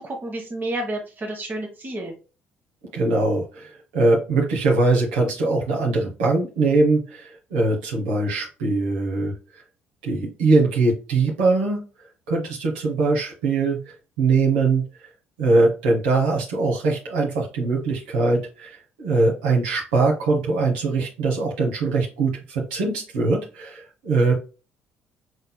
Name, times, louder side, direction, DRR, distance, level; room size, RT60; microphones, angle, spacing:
voice 1, 0.0-2.1, right 1 dB, 35° right, 0 dB, 1.1 m, -30 dB
voice 2, 2.9-9.3 10.0-11.8 12.3-14.8 15.4-24.3, right 3 dB, 80° right, -2 dB, 1.0 m, -22 dB
4.2 x 3.8 x 2.2 m, 0.33 s
hypercardioid pair, 50°, 5 cm